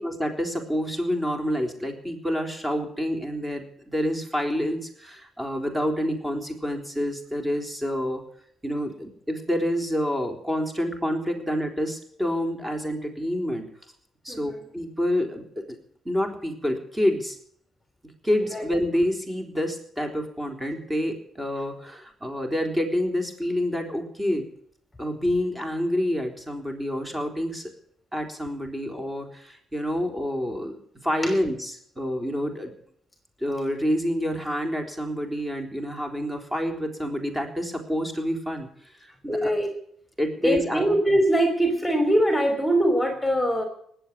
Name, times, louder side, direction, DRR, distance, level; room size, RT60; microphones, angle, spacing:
voice 1, 0.0-8.2 8.6-13.6 14.2-15.8 16.1-17.4 18.2-24.5 25.0-27.7 28.1-32.7 33.4-38.7 39.0-39.5 40.2-40.8, equal, 15° right, 4 dB, 3.9 m, -28 dB
voice 2, 14.3-14.6 18.5-18.6 31.2-31.3 39.3-39.7 40.4-43.6, right 1 dB, 10° left, 5 dB, 3.2 m, -22 dB
19.5 x 7.8 x 9.4 m, 0.64 s
cardioid pair, 90°, 0 cm